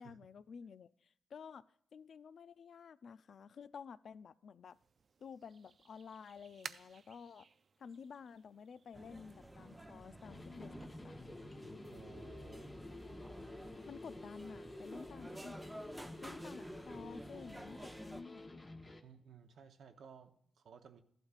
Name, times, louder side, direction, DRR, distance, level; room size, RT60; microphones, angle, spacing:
voice 1, 0.0-1.7 1.9-4.8 5.2-7.5 7.8-11.4 13.9-15.8 16.2-18.5, left 6 dB, 65° left, 0.4 m, -52 dB
sound 1, 4.7-9.9, right 5 dB, 50° right, 0.4 m, -56 dB
sound 2, 8.9-18.2, right 1 dB, 10° right, 0.6 m, -51 dB
sound 3, 10.2-19.0, left 2 dB, 25° left, 1.0 m, -51 dB
voice 2, 11.9-12.7 19.0-21.0, right 6 dB, 75° right, 0.9 m, -57 dB
14.0 x 12.0 x 2.4 m
cardioid pair, 90°, 0 cm